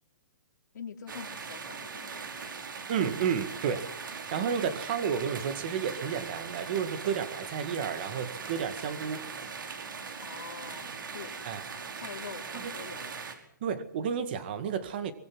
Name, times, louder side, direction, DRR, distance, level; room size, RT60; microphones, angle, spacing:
voice 1, 0.7-2.9 10.2-11.4 12.0-13.1, left 7 dB, 65° left, 5 dB, 3.2 m, -45 dB
sound 1, 1.1-13.3, right 5 dB, 75° right, 5.2 m, -40 dB
voice 2, 2.9-3.9 4.3-9.3 11.5-11.6 12.5-12.7 13.6-15.1, right 7 dB, 30° right, 11 dB, 2.0 m, -31 dB
24.0 x 23.0 x 6.1 m, 0.69 s
hypercardioid pair, 180°, 11 cm